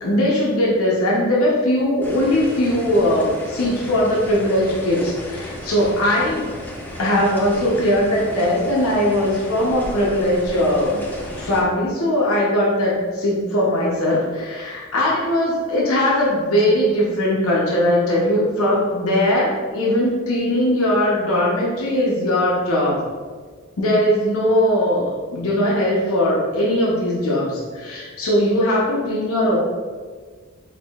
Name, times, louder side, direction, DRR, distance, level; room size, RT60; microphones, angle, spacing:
voice 1, 0.0-6.5 7.0-11.0 11.4-23.0 23.8-29.6, left 1 dB, 80° left, -5 dB, 0.7 m, -20 dB
sound 1, 2.0-11.6, equal, 10° left, 0.4 m, -34 dB
4.7 x 2.6 x 2.3 m, 1.5 s
head